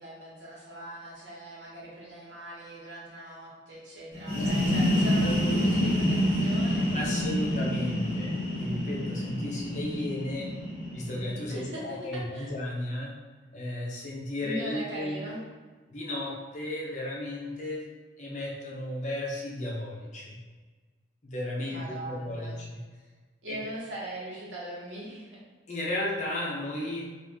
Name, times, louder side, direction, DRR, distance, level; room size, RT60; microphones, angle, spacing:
voice 1, 0.0-7.2 11.5-11.8 12.1-12.5 14.4-15.4 21.6-22.6 23.4-25.4, right 1 dB, 75° right, -6 dB, 1.2 m, -40 dB
sound 1, 4.1-11.7, equal, 40° right, 1.3 m, -28 dB
voice 2, 5.1-5.7 6.9-10.5 10.9-13.1 13.5-15.4 15.9-17.8 18.2-20.4 21.2-22.8 23.5-23.7 25.7-27.1, left 1 dB, 40° left, -4 dB, 0.8 m, -34 dB
3.0 x 2.6 x 3.5 m, 1.4 s
head